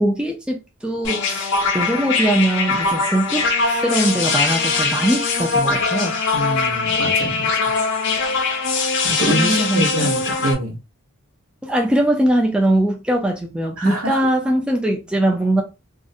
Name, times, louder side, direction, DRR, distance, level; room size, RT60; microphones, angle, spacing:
voice 1, 0.0-6.2 9.2-10.1 11.6-15.6, right 1 dB, 5° right, 0.3 m, -21 dB
sound 1, 1.0-10.5, left 4 dB, 55° left, 0.5 m, -21 dB
voice 2, 6.3-7.6 9.0-10.8 13.8-14.2, right 1 dB, 70° right, 0.8 m, -24 dB
2.4 x 2.0 x 2.6 m
head